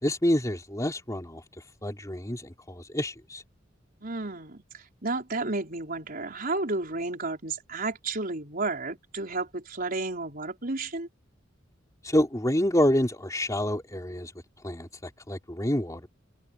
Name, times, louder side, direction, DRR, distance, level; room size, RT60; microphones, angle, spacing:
voice 1, 0.0-1.4 1.8-3.4 12.0-14.3 14.6-16.1, left 1 dB, 15° left, 3.8 m, -27 dB
voice 2, 4.0-11.1, right 3 dB, 50° right, 4.9 m, -32 dB
head